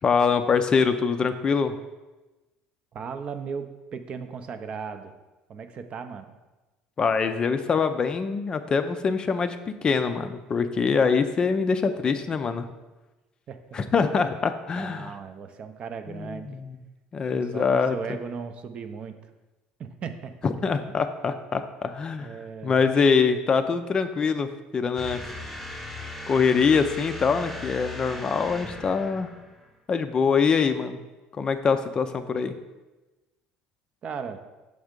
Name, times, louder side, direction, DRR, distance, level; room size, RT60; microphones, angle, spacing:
voice 1, 0.0-1.8 7.0-12.7 13.7-15.1 16.1-16.6 17.1-17.9 20.4-22.3 22.6-25.2 26.3-29.3 29.9-31.0 31.4-32.5, left 5 dB, 30° left, 9 dB, 0.4 m, -24 dB
voice 2, 2.9-5.2 5.5-6.3 13.5-13.6 14.8-16.6 17.3-19.2 19.8-20.3 22.2-22.8 34.0-34.4, right 6 dB, 40° right, 8 dB, 0.5 m, -36 dB
sound 1, 25.0-29.7, left 2 dB, ahead, 0.9 m, -38 dB
6.4 x 3.5 x 5.1 m, 1.1 s
cardioid pair, 115°, 3 cm